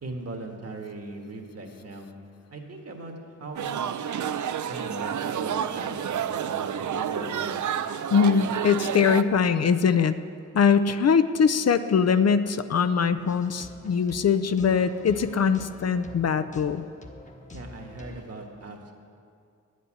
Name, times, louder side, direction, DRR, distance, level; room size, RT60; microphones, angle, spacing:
voice 1, 0.0-2.1 2.5-3.1 3.4-4.1 4.7-7.6 17.5-18.9, right 2 dB, 55° right, 2 dB, 1.7 m, -39 dB
sound 1, 3.6-9.2, right 8 dB, 75° right, 0.6 m, -30 dB
voice 2, 8.1-10.2 10.5-16.8, left 6 dB, 55° left, 11 dB, 0.6 m, -22 dB
sound 2, 13.2-18.2, left 2 dB, 25° left, 1.2 m, -46 dB
10.5 x 8.3 x 10.0 m, 2.3 s
wide cardioid pair, 120°, 30 cm